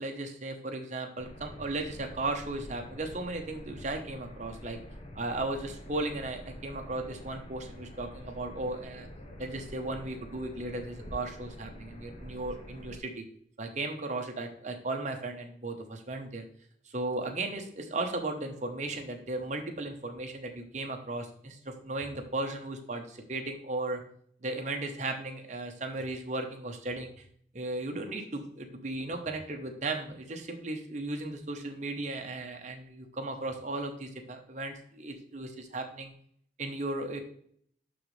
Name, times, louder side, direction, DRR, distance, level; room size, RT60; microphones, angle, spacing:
voice 1, 0.0-4.8 5.1-9.1 9.4-13.2 13.6-16.4 16.9-24.0 24.4-27.1 27.5-36.1 36.6-37.2, right 2 dB, 40° right, 4 dB, 1.0 m, -36 dB
sound 1, 1.2-13.0, equal, 35° left, 0.9 m, -46 dB
11.5 x 3.9 x 3.3 m, 0.63 s
head